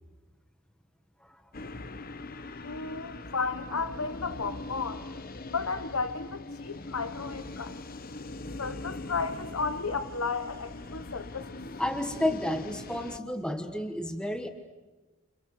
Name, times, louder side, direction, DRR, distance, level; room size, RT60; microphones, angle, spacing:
sound 1, 1.5-13.2, left 2 dB, 40° left, 0.9 m, -41 dB
voice 1, 2.3-5.1 5.5-7.8 8.6-11.6, left 4 dB, 75° left, 10 dB, 1.1 m, -34 dB
voice 2, 11.8-14.5, left 1 dB, 5° left, 6 dB, 1.3 m, -31 dB
30.0 x 29.0 x 6.6 m, 1.2 s
head